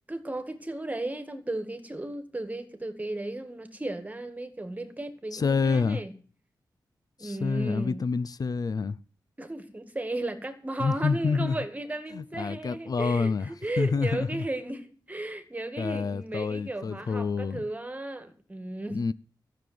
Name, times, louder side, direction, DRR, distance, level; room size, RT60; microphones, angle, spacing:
voice 1, 0.1-6.1 7.2-8.1 9.4-19.0, right 2 dB, 20° right, 2.0 m, -35 dB
voice 2, 5.3-6.0 7.2-9.0 10.8-11.6 12.1-13.5 13.8-14.4 15.8-17.6 18.9-19.1, left 4 dB, 50° left, 0.6 m, -28 dB
14.5 x 6.9 x 9.3 m
wide cardioid pair, 110°, 8 cm